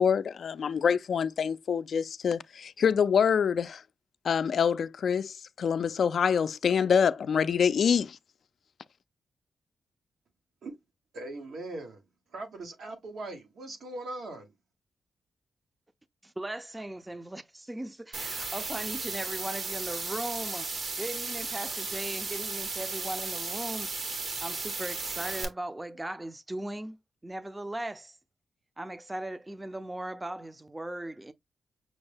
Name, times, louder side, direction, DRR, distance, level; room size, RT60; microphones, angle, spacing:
voice 1, 0.0-3.8 4.2-8.2, left 7 dB, 70° left, 0.3 m, -26 dB
voice 2, 11.1-12.1 12.3-14.5, right 2 dB, 80° right, 1.3 m, -40 dB
voice 3, 16.2-20.7 21.0-23.9 24.4-27.0 27.2-28.2 28.8-31.3, right 1 dB, 15° right, 0.5 m, -38 dB
sound 1, 18.1-25.4, right 3 dB, 65° right, 1.2 m, -35 dB
6.1 x 2.1 x 3.3 m
cardioid pair, 85°, 0 cm